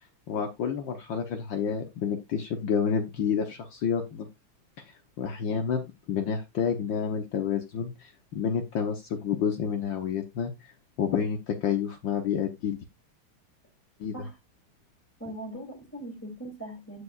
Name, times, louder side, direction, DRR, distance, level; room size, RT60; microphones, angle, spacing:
voice 1, 0.3-4.3 4.8-4.9 5.2-10.5 11.0-12.8 14.0-14.3, left 7 dB, 65° left, 1.7 m, -29 dB
voice 2, 15.2-17.0, right 1 dB, 5° left, 2.9 m, -40 dB
14.5 x 5.1 x 2.4 m
omnidirectional pair, 2.4 m